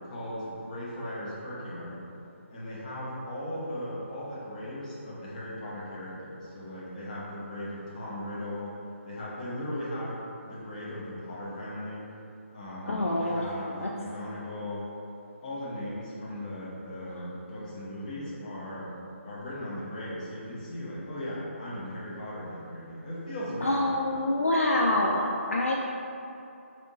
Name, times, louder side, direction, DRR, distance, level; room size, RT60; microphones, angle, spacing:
voice 1, 0.0-2.0 2.5-8.8 9.0-12.0 12.5-14.9 15.4-18.9 19.2-23.9, left 1 dB, 35° left, -8 dB, 1.0 m, -37 dB
voice 2, 12.9-13.5 13.8-13.9 23.6-25.7, left 1 dB, 70° left, -1 dB, 0.4 m, -26 dB
3.5 x 2.6 x 3.8 m, 2.7 s
figure-of-eight pair, 145°, 7 cm